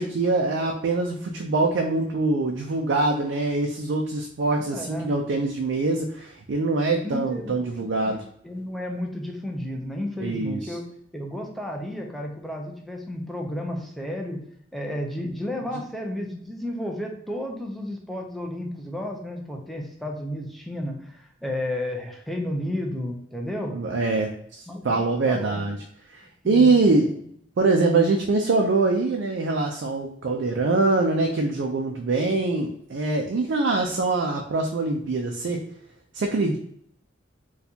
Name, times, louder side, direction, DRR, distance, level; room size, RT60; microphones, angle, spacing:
voice 1, 0.0-8.2 10.2-10.8 23.7-25.8 26.1-27.1 27.6-35.6 36.1-36.6, right 3 dB, 70° right, 2 dB, 0.4 m, -24 dB
voice 2, 4.7-5.1 7.0-8.2 8.4-10.8 11.1-14.4 14.7-23.7 24.7-24.9 25.3-25.6 26.4-26.7, left 1 dB, ahead, 0 dB, 0.5 m, -32 dB
4.2 x 2.4 x 2.7 m, 0.65 s
head